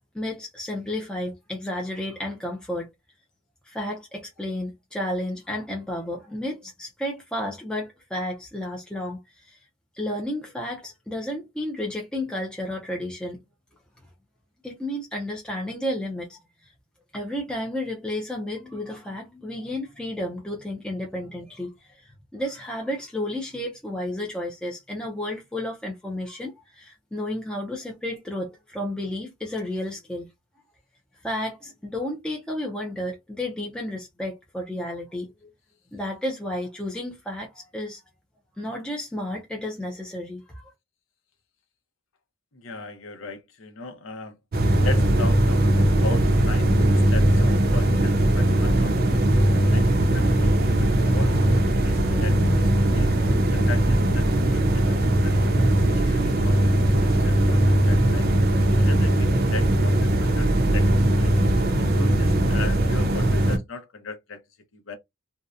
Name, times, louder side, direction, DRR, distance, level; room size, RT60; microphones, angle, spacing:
voice 1, 0.1-2.9 3.7-9.6 9.9-13.4 14.6-16.7 17.1-30.3 31.2-35.5 35.9-38.0 38.5-40.6, left 1 dB, 5° left, 0.4 m, -32 dB
voice 2, 42.5-44.4 44.8-45.6 45.9-49.3 49.7-53.1 53.5-56.7 57.0-58.3 58.8-61.3 61.8-64.4 64.7-64.9, left 3 dB, 75° left, 0.7 m, -38 dB
sound 1, 44.5-63.6, right 1 dB, 50° right, 0.5 m, -20 dB
2.7 x 2.1 x 2.3 m
head